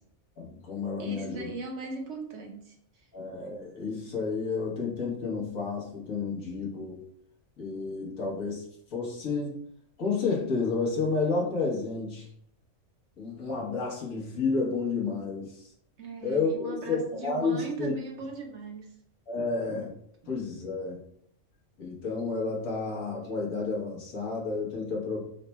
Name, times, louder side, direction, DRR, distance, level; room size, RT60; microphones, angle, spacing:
voice 1, 0.4-1.5 3.1-7.0 7.6-8.6 8.9-9.6 10.0-12.3 13.2-15.7 16.2-17.9 19.3-19.9 20.3-21.0 21.8-25.2, left 4 dB, 85° left, -4 dB, 1.6 m, -31 dB
voice 2, 1.0-2.8 16.0-18.9 19.4-19.5, right 4 dB, 60° right, 2 dB, 1.0 m, -38 dB
4.0 x 2.3 x 4.1 m, 0.67 s
omnidirectional pair, 1.4 m